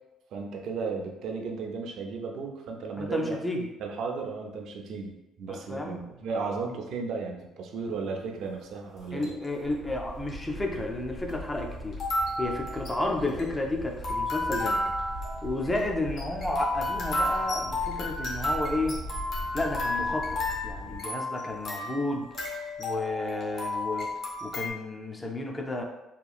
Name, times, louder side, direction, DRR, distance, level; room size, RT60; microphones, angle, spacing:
voice 1, 0.3-3.4 3.8-9.3, right 4 dB, 55° right, 2 dB, 0.4 m, -34 dB
voice 2, 3.0-3.7 5.5-6.1 9.1-12.0 12.4-14.9 15.4-19.0 19.5-22.3 22.8-24.1 24.4-25.8, left 2 dB, 10° left, 1 dB, 0.3 m, -32 dB
sound 1, 9.0-9.5 10.3-10.4 11.9-24.7, left 1 dB, 45° left, 0.6 m, -32 dB
sound 2, 9.6-21.0, left 1 dB, 80° left, 1.3 m, -40 dB
2.8 x 2.3 x 2.3 m, 0.96 s
cardioid pair, 165°, 0 cm